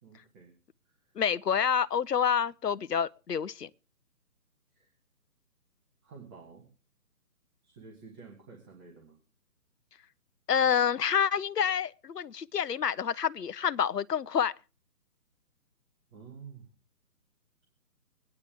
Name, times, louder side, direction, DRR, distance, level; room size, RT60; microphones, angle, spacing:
voice 1, 0.0-0.5 0.8-1.0 4.7-4.9 6.0-6.7 7.6-9.2 16.1-16.7, right 5 dB, 15° right, 1.5 m, -50 dB
voice 2, 1.2-3.7 10.5-14.5, left 8 dB, 80° left, 0.7 m, -28 dB
23.5 x 9.8 x 3.5 m
figure-of-eight pair, 145°, 47 cm